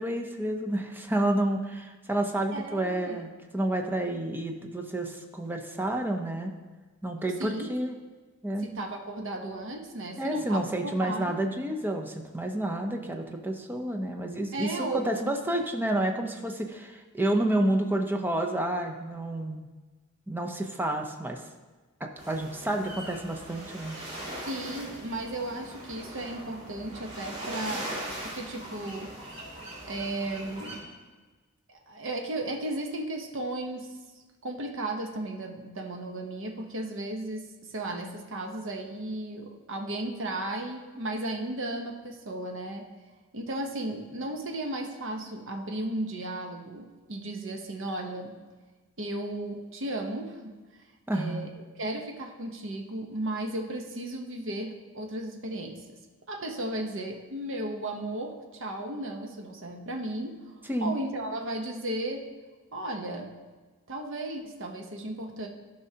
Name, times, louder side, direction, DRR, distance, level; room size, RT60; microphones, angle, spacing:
voice 1, 0.0-6.5 7.0-8.0 8.4-8.8 10.2-19.7 20.3-21.4 22.0-24.0 51.1-51.5 60.7-60.9, right 1 dB, 10° right, 3 dB, 0.6 m, -30 dB
voice 2, 2.5-3.2 7.4-7.7 8.6-11.4 14.5-15.0 24.4-28.0 28.2-29.1 29.8-30.8 31.7-33.9 34.4-42.9 43.3-48.3 49.0-50.6 51.1-56.0 56.3-62.3 62.7-63.3 63.9-65.5, right 1 dB, 60° right, 3 dB, 0.9 m, -35 dB
sound 1, 22.2-30.8, right 1 dB, 30° right, 2.5 m, -40 dB
13.5 x 5.3 x 2.8 m, 1.3 s
head